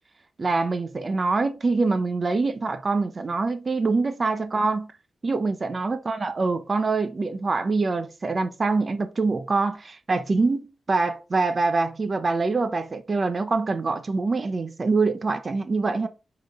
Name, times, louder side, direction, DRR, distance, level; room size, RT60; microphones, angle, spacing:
voice 1, 0.4-4.9 5.2-16.1, right 3 dB, 30° right, 0.6 m, -25 dB
5.2 x 4.1 x 5.1 m
wide cardioid pair, 165°, 0 cm